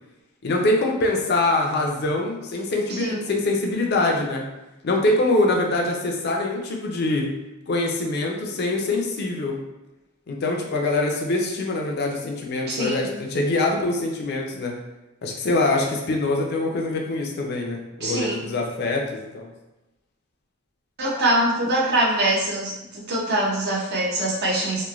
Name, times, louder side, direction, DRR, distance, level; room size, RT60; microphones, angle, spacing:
voice 1, 0.4-4.4 4.8-7.3 7.7-9.6 10.3-14.8 15.2-19.5, left 2 dB, 50° left, 0 dB, 0.5 m, -24 dB
voice 2, 2.9-3.2 12.7-13.0 18.0-18.3 21.0-24.9, right 1 dB, 50° right, -3 dB, 0.7 m, -23 dB
3.0 x 2.2 x 2.4 m, 1.0 s
head